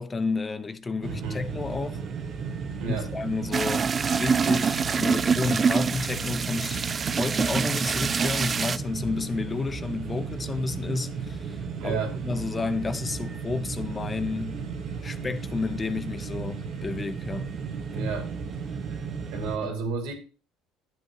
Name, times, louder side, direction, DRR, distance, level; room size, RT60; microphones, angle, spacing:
voice 1, 0.0-2.0 2.9-6.9 7.2-14.6 15.0-17.5 17.9-18.1 19.6-19.7, left 4 dB, 25° left, 0.7 m, -31 dB
sound 1, 1.0-19.6, right 5 dB, 50° right, 1.5 m, -35 dB
voice 2, 1.1-1.4 2.8-3.1 11.8-12.1 17.9-18.3 18.9-19.0 19.3-20.1, right 4 dB, 75° right, 2.6 m, -31 dB
sound 2, 3.5-8.8, right 5 dB, 35° right, 0.3 m, -25 dB
11.5 x 7.6 x 3.0 m
hypercardioid pair, 75°, 0 cm